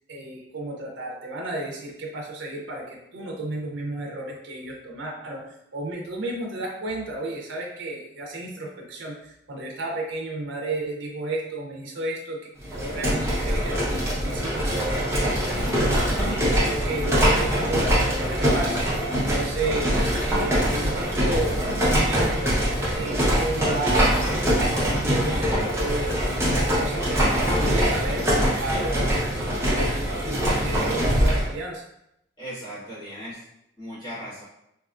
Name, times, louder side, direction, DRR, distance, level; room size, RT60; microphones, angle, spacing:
voice 1, 0.1-18.9 19.2-22.5 22.9-26.2 26.5-29.4 29.7-31.9, right 2 dB, 75° right, -1 dB, 0.5 m, -33 dB
sound 1, 12.6-31.5, equal, 15° right, 0.6 m, -23 dB
voice 2, 16.3-16.7 32.4-33.4 33.8-34.4, equal, 25° left, -11 dB, 1.2 m, -37 dB
2.8 x 2.2 x 2.4 m, 0.81 s
head